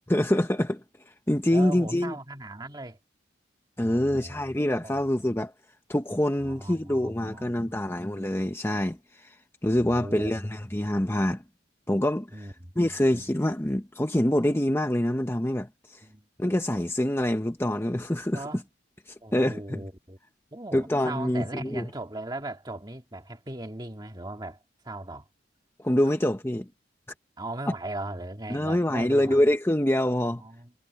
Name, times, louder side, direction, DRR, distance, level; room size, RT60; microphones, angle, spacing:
voice 1, 0.1-0.8 1.3-2.2 3.8-5.5 5.9-9.4 9.6-11.4 11.9-12.5 12.8-16.0 16.4-18.4 19.1-19.8 20.7-21.9 25.8-26.7 28.5-30.4, left 1 dB, 15° left, 0.9 m, -25 dB
voice 2, 1.5-3.0 3.8-4.5 4.8-5.0 6.4-7.9 9.7-10.4 12.3-13.0 16.0-16.3 18.3-18.6 19.2-20.2 20.5-24.6 24.8-25.3 27.4-29.4 30.3-30.7, right 2 dB, 20° right, 2.0 m, -38 dB
head